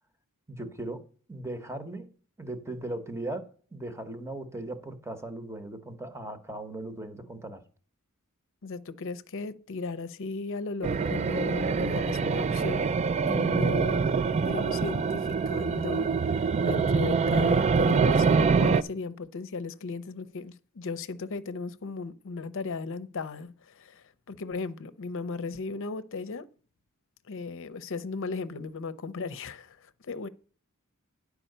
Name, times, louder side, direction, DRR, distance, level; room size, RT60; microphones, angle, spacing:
voice 1, 0.5-2.1 2.4-7.6, right 2 dB, 10° right, 0.9 m, -38 dB
voice 2, 8.6-12.9 13.3-14.1 14.4-16.1 16.6-26.5 27.3-30.3, left 4 dB, 60° left, 0.6 m, -36 dB
sound 1, 10.8-18.8, right 5 dB, 30° right, 0.3 m, -25 dB
10.0 x 4.8 x 6.6 m
head